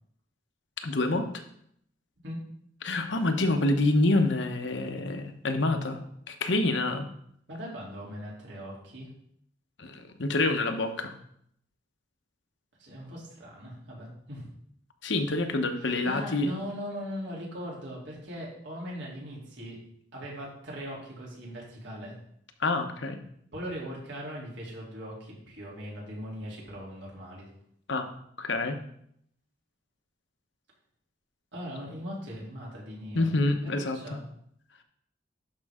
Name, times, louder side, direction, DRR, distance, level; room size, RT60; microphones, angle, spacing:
voice 1, 0.8-1.3 2.8-7.1 9.8-11.1 15.0-16.5 22.6-23.2 27.9-28.1 28.4-28.8 33.1-34.0, left 2 dB, 70° left, 6 dB, 0.9 m, -27 dB
voice 2, 7.5-9.1 12.8-14.5 15.8-19.8 20.1-22.1 23.5-27.5 31.5-34.2, equal, 65° right, -4 dB, 3.0 m, -40 dB
11.5 x 5.4 x 3.6 m, 0.69 s
head